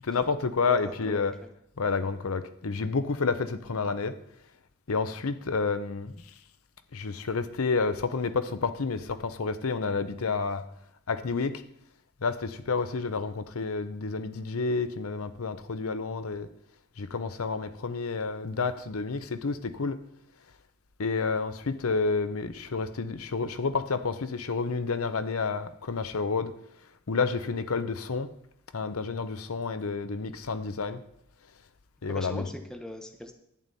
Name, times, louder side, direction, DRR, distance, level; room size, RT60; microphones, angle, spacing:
voice 1, 0.0-1.4 1.8-4.1 4.9-6.1 6.9-10.7 11.1-11.6 12.2-16.5 17.0-20.0 21.0-26.6 27.1-28.3 28.7-31.0 32.0-32.4, left 4 dB, 85° left, 0.7 m, -30 dB
voice 2, 0.6-1.5 32.1-33.3, left 1 dB, 5° left, 0.9 m, -41 dB
11.0 x 9.1 x 4.1 m
head